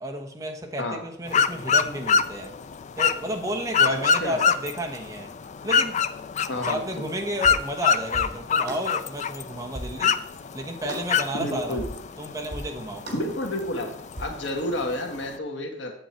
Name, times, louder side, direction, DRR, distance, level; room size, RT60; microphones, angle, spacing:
voice 1, 0.0-2.5 3.0-5.3 5.6-6.0 6.5-10.1 10.5-11.9 12.2-13.1, right 1 dB, 20° right, 1 dB, 1.1 m, -32 dB
sound 1, 1.3-15.4, left 6 dB, 40° left, 0.4 m, -27 dB
voice 2, 3.8-4.4 6.5-7.0 11.3-11.8 13.1-13.9 14.2-15.9, left 1 dB, 85° left, 3 dB, 1.5 m, -30 dB
sound 2, 7.1-7.2 7.4-7.7 8.1-8.4 8.7-8.9 9.2-9.3 9.7-10.0 10.3-10.4 10.9-11.1 11.4-11.5 11.8-12.1 12.5-12.7 13.1-13.3 13.6-13.7 14.2-14.3, right 1 dB, 70° right, 3.1 m, -37 dB
7.8 x 7.8 x 4.4 m, 0.67 s
head